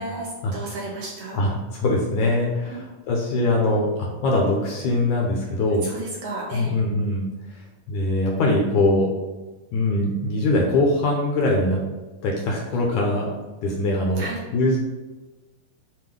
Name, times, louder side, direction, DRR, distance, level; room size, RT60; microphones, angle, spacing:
voice 1, 0.0-1.4 2.7-2.8 5.8-6.7 14.2-14.4, right 2 dB, 70° right, -3 dB, 1.9 m, -33 dB
voice 2, 1.4-5.8 6.5-7.3 7.9-9.1 9.7-11.8 12.2-13.3 13.6-14.3 14.5-14.8, left 2 dB, 70° left, 0 dB, 1.9 m, -22 dB
7.8 x 2.7 x 5.2 m, 1.2 s
omnidirectional pair, 4.1 m